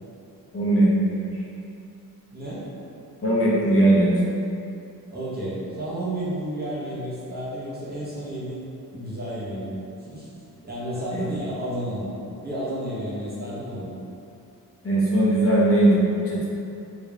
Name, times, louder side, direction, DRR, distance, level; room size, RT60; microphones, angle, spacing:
voice 1, 0.5-1.2 3.2-4.2 11.1-11.3 14.8-16.5, right 1 dB, 35° left, -8 dB, 0.8 m, -19 dB
voice 2, 2.3-2.6 5.1-8.7 8.9-10.3 10.6-12.1 12.4-13.9, right 1 dB, 25° right, -9 dB, 0.8 m, -31 dB
3.4 x 2.4 x 3.3 m, 2.7 s
wide cardioid pair, 120°, 38 cm